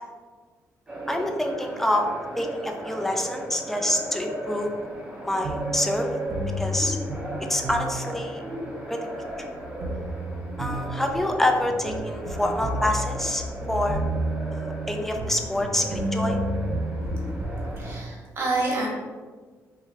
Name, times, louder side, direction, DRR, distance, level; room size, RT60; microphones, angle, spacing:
sound 1, 0.9-18.0, right 1 dB, 15° right, 0.8 m, -36 dB
voice 1, 1.1-2.1 2.4-4.7 5.2-6.1 6.6-7.0 7.5-8.4 8.9-9.1 10.6-14.0 14.5-16.4, left 1 dB, 5° left, 3 dB, 0.3 m, -27 dB
sound 2, 5.4-17.9, right 1 dB, 75° right, 0.4 m, -31 dB
voice 2, 17.8-18.9, right 2 dB, 45° right, -3 dB, 1.1 m, -27 dB
3.1 x 2.4 x 3.2 m, 1.5 s
cardioid pair, 120°, 6 cm